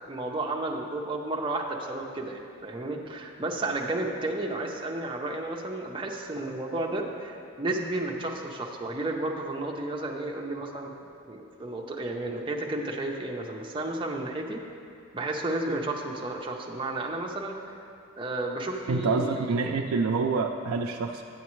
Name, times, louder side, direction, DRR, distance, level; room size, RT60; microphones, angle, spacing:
voice 1, 0.0-10.9 11.3-14.6 15.1-17.8 18.2-19.8, right 2 dB, 25° right, 0 dB, 0.6 m, -32 dB
voice 2, 18.9-21.2, right 4 dB, 80° right, 1 dB, 0.4 m, -27 dB
9.3 x 8.3 x 3.1 m, 2.5 s
head